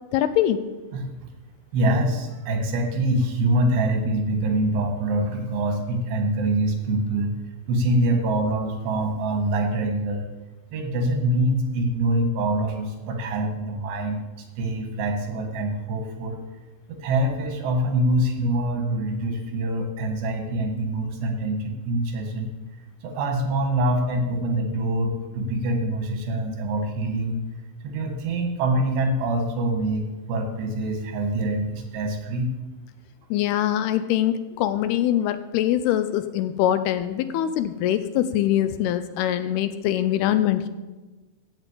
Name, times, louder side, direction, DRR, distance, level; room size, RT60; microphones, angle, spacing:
voice 1, 0.1-0.6 33.3-40.7, left 12 dB, 80° left, 11 dB, 2.5 m, -23 dB
voice 2, 1.7-7.3 7.7-10.3 10.7-16.4 16.9-22.5 23.0-27.4 27.8-32.5, right 1 dB, 85° right, 3 dB, 3.8 m, -25 dB
15.5 x 5.4 x 8.2 m, 1.2 s
omnidirectional pair, 4.8 m